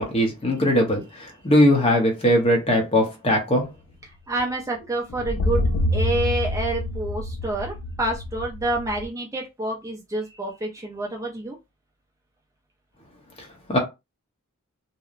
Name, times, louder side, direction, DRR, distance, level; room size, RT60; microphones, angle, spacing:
voice 1, 0.0-3.6 13.7-13.8, equal, 25° left, 0.7 m, -20 dB
voice 2, 4.0-11.6, right 2 dB, 15° right, 0.4 m, -28 dB
sound 1, 5.1-9.1, left 1 dB, 70° left, 0.3 m, -26 dB
2.8 x 2.0 x 2.4 m
head